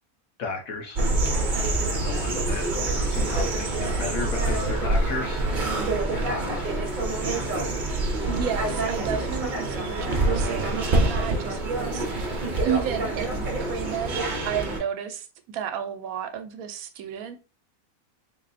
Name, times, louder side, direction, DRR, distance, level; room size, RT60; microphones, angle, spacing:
voice 1, 0.4-1.0 1.3-2.7 3.0-5.4 6.1-6.7, left 3 dB, 70° left, 3 dB, 1.3 m, -34 dB
sound 1, 1.0-14.8, right 2 dB, 40° right, 0.8 m, -26 dB
voice 2, 8.3-14.2 14.4-17.4, right 8 dB, 75° right, 9 dB, 1.0 m, -32 dB
3.8 x 2.1 x 4.0 m, 0.33 s
omnidirectional pair, 1.6 m